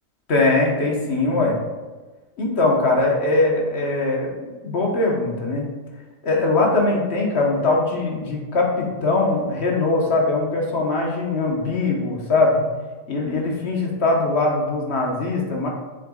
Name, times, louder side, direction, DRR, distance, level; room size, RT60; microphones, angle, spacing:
voice 1, 0.3-1.6 2.4-5.7 6.2-12.7 13.1-15.7, left 2 dB, 55° left, -1 dB, 1.5 m, -21 dB
6.8 x 6.8 x 2.4 m, 1.3 s
omnidirectional pair, 1.4 m